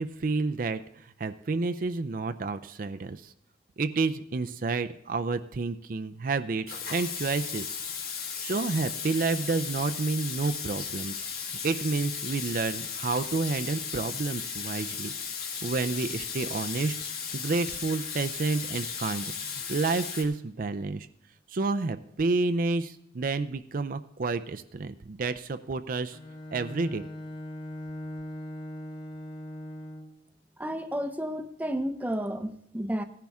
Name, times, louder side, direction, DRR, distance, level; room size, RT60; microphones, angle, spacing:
voice 1, 0.0-3.3 3.8-7.8 8.4-11.3 11.6-15.1 15.6-16.9 17.3-21.1 21.5-26.2 26.5-27.0, right 3 dB, 50° right, 9 dB, 0.5 m, -30 dB
Water tap faucet / Sink (filling or washing), 6.7-20.2, left 6 dB, 55° left, 1.9 m, -36 dB
Bowed string instrument, 26.1-30.3, left 1 dB, 25° left, 1.0 m, -40 dB
voice 2, 30.6-33.0, equal, 10° right, 8 dB, 0.6 m, -32 dB
16.0 x 10.5 x 3.6 m, 0.76 s
head